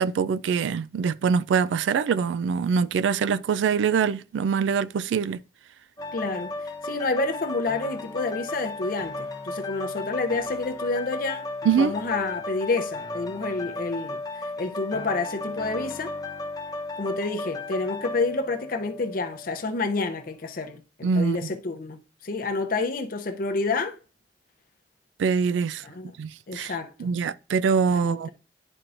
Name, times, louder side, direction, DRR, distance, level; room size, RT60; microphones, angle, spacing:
voice 1, 0.0-5.4 11.7-11.9 21.0-21.4 25.2-25.8 26.2-26.7 27.0-28.3, right 6 dB, 90° right, 0.3 m, -24 dB
sound 1, 6.0-19.7 20.1-20.3, left 2 dB, 20° left, 0.8 m, -34 dB
voice 2, 6.1-6.5 6.8-11.5 11.8-14.2 14.6-16.1 17.0-24.0 25.8-26.1 26.5-27.1 27.9-28.3, left 3 dB, 50° left, 0.6 m, -29 dB
11.0 x 4.4 x 2.5 m
head